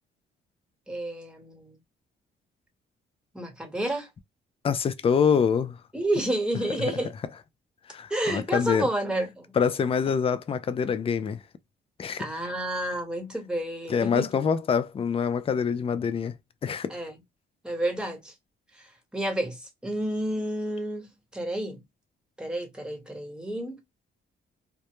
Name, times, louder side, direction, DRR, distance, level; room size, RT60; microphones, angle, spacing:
voice 1, 0.9-1.8 3.3-4.1 5.9-7.1 8.1-9.5 12.2-14.4 16.9-17.2 17.6-18.3 19.1-21.8 22.4-23.8, right 1 dB, 5° right, 1.0 m, -30 dB
voice 2, 4.6-5.8 6.8-6.9 7.9-8.9 9.6-11.4 12.0-12.2 13.9-16.3 16.6-16.9, left 6 dB, 30° left, 0.4 m, -25 dB
2.2 x 2.0 x 2.9 m
cardioid pair, 90°, 20 cm